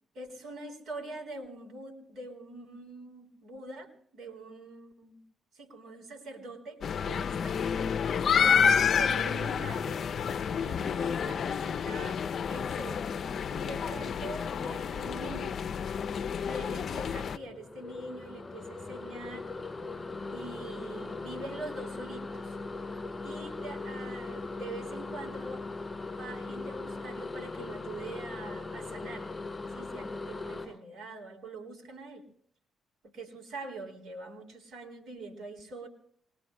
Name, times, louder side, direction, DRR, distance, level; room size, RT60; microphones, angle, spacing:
voice 1, 0.1-5.2 5.5-7.6 8.9-10.1 10.5-13.1 13.5-15.6 16.4-19.6 20.3-22.6 23.2-25.6 26.2-29.3 29.7-32.3 33.0-35.9, right 2 dB, 65° right, 2 dB, 4.1 m, -44 dB
sound 1, 6.8-17.4, left 7 dB, 55° left, 0.5 m, -29 dB
sound 2, 17.0-30.7, left 3 dB, 15° left, 6.6 m, -39 dB
27.0 x 21.5 x 2.2 m, 0.64 s
cardioid pair, 90°, 0 cm